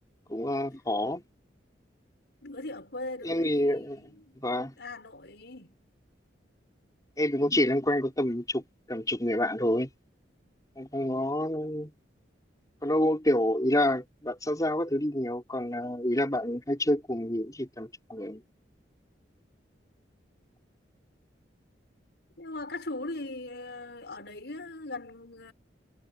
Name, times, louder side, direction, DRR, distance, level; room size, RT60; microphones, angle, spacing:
voice 1, 0.3-1.2 3.2-4.0 4.4-4.7 7.2-8.6 8.9-9.9 10.8-11.9 12.8-18.4, left 1 dB, 20° left, 5.9 m, -28 dB
voice 2, 2.4-4.4 4.8-5.8 22.4-25.5, left 2 dB, 65° left, 7.1 m, -40 dB
head